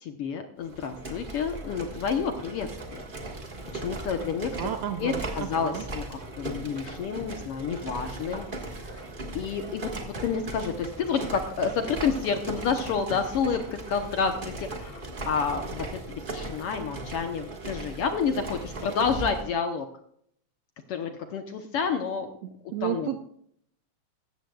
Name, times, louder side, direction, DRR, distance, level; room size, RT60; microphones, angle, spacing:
voice 1, 0.0-3.0 3.7-4.7 5.0-9.0 9.3-19.9 20.9-22.3 22.8-23.1, left 6 dB, 70° left, 6 dB, 1.5 m, -30 dB
sound 1, 0.6-19.5, right 2 dB, 35° right, 0.8 m, -38 dB
voice 2, 4.6-5.8 22.7-23.2, right 11 dB, 75° right, 8 dB, 1.5 m, -32 dB
15.5 x 13.5 x 2.3 m, 0.66 s
omnidirectional pair, 3.4 m